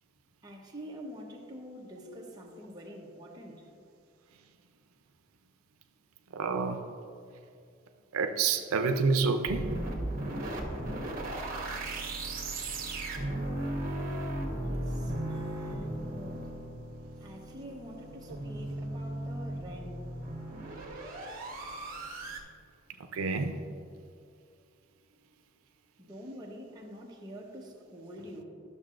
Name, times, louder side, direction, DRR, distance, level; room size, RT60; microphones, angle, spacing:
voice 1, 0.4-3.7 14.6-16.5 17.2-20.0 26.0-28.4, equal, 20° right, -2 dB, 0.9 m, -46 dB
voice 2, 6.3-6.8 8.1-9.7 23.1-23.6, right 4 dB, 90° right, 6 dB, 0.5 m, -28 dB
sound 1, 9.5-22.4, right 1 dB, 40° right, 1.2 m, -36 dB
12.0 x 6.5 x 2.5 m, 2.4 s
head